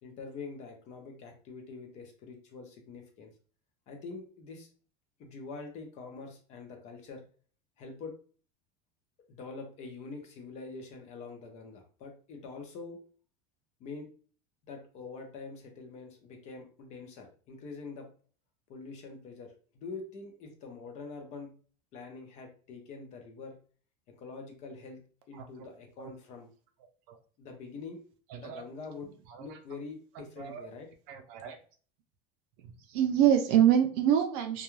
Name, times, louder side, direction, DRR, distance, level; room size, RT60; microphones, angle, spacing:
voice 1, 0.0-3.3 3.9-4.7 5.2-7.2 7.8-8.2 9.3-13.0 13.8-14.1 14.7-18.1 18.7-21.5 21.9-23.6 24.1-25.0 25.3-26.5 27.4-28.0 28.4-29.1 29.4-30.9, left 4 dB, 35° left, 3 dB, 0.6 m, -45 dB
voice 2, 28.3-28.6 29.0-29.5 30.2-30.7 31.1-31.6 32.9-34.6, right 10 dB, 55° right, 6 dB, 0.5 m, -26 dB
2.3 x 2.2 x 3.0 m, 0.41 s
cardioid pair, 165°, 20 cm